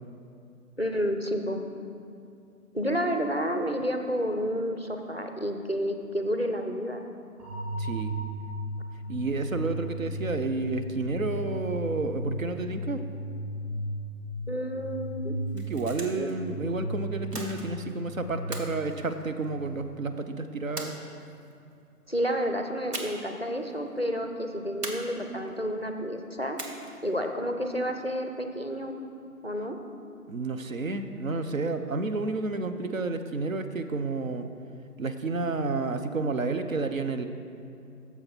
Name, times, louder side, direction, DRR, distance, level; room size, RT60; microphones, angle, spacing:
voice 1, 0.8-1.6 2.7-7.1 14.5-15.4 16.1-16.3 22.1-26.6 27.0-28.9 29.4-29.8, equal, 45° left, 5 dB, 0.4 m, -30 dB
sound 1, 7.4-19.4, equal, 25° right, 2.3 m, -35 dB
voice 2, 7.8-8.1 9.1-13.0 15.5-20.9 30.3-34.5 35.0-37.3, right 3 dB, 60° right, 8 dB, 0.6 m, -30 dB
sound 2, 15.4-16.4 17.3-18.0 18.5-19.8 20.8-21.5 22.9-23.4 23.7-23.8 24.8-25.6 26.6-27.1, right 2 dB, 80° right, 1.4 m, -39 dB
9.6 x 7.0 x 4.4 m, 2.5 s
figure-of-eight pair, 155°, 47 cm